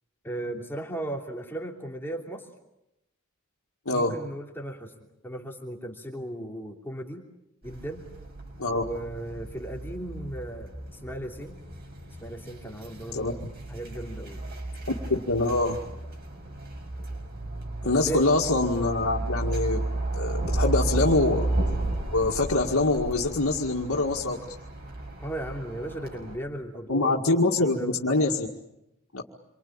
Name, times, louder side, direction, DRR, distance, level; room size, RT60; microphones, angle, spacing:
voice 1, 0.2-2.5 3.9-4.9 5.2-7.2 7.6-8.0 8.7-11.6 12.2-14.4 17.8-18.2 25.2-27.2 27.6-28.0, right 1 dB, 10° left, 1 dB, 3.0 m, -36 dB
voice 2, 3.9-4.2 8.6-8.8 13.1-13.3 15.1-15.8 17.8-19.9 20.1-21.5 22.1-24.4 26.9-28.5 29.1-29.2, left 2 dB, 80° left, -1 dB, 2.1 m, -24 dB
sound 1, 7.6-26.4, right 2 dB, 45° right, 6.7 m, -33 dB
28.0 x 24.0 x 8.8 m, 0.88 s
head